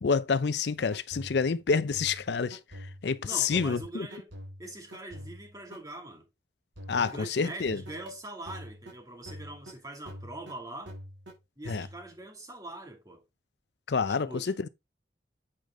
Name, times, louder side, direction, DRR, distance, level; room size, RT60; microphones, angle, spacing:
voice 1, 0.0-2.6 3.0-4.1 6.9-7.8 11.7-11.9 13.9-14.7, left 5 dB, 65° left, 0.5 m, -28 dB
sound 1, 0.9-5.8 6.8-9.0 9.3-9.8 10.1-10.6 10.9-11.4 11.7-12.2, equal, 85° right, 3.5 m, -45 dB
voice 2, 3.2-4.3 4.6-6.3 6.9-10.9 11.6-13.2 14.1-14.7, right 2 dB, 20° right, 2.3 m, -43 dB
8.5 x 4.9 x 3.7 m
head